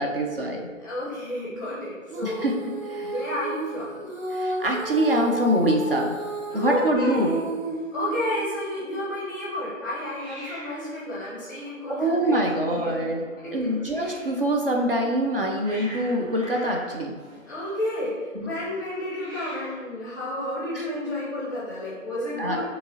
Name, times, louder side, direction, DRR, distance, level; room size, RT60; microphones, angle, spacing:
voice 1, 0.0-0.7 2.2-3.1 4.3-6.1 6.5-7.4 12.0-13.2 13.5-17.1 18.3-18.5 20.7-20.9 22.4-22.7, right 1 dB, 45° right, 1 dB, 0.5 m, -24 dB
voice 2, 0.8-2.4 2.8-4.0 6.5-7.4 7.9-13.0 13.4-13.7 17.4-18.1 18.4-22.7, left 1 dB, 15° left, -6 dB, 0.6 m, -31 dB
Female singing, 2.1-8.6, right 3 dB, 75° right, 1.1 m, -33 dB
Hiss, 3.8-5.1 5.4-5.8 6.1-6.2 6.4-7.1 10.1-14.4 15.1-18.1 19.0-20.0, equal, 25° right, 1.1 m, -45 dB
6.3 x 2.9 x 2.9 m, 1.5 s
figure-of-eight pair, 145°, 41 cm